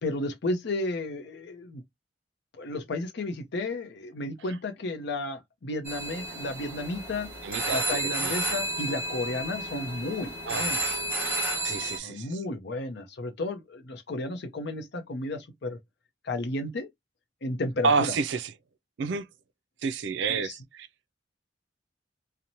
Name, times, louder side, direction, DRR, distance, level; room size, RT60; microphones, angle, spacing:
voice 1, 0.0-1.8 2.6-7.3 7.7-10.8 12.0-15.8 16.2-16.9 17.4-18.1 20.3-20.5, left 2 dB, 65° left, 0.6 m, -33 dB
sound 1, 5.8-12.0, right 1 dB, 10° right, 0.9 m, -31 dB
voice 2, 7.4-8.6 10.5-10.9 11.6-12.4 17.8-18.5 19.0-19.3 19.8-20.9, right 4 dB, 65° right, 0.4 m, -29 dB
2.9 x 2.1 x 2.6 m
head